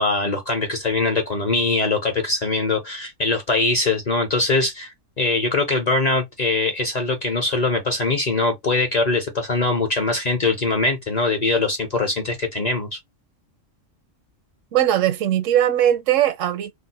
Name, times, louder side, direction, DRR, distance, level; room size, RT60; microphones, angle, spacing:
voice 1, 0.0-13.0, left 3 dB, 45° left, 0.6 m, -22 dB
voice 2, 14.7-16.7, right 11 dB, 80° right, 0.9 m, -19 dB
2.6 x 2.1 x 4.0 m
omnidirectional pair, 1.3 m